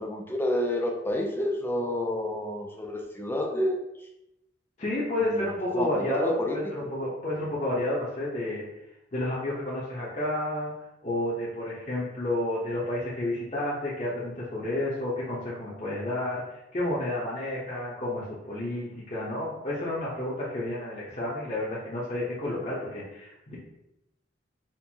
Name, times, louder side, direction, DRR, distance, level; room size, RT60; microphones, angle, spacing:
voice 1, 0.0-4.1 5.2-6.9, left 1 dB, 10° left, 1 dB, 0.4 m, -30 dB
voice 2, 4.8-8.7 9.1-10.7 11.0-23.6, left 1 dB, 40° left, -7 dB, 0.8 m, -31 dB
4.3 x 2.6 x 2.8 m, 0.89 s
head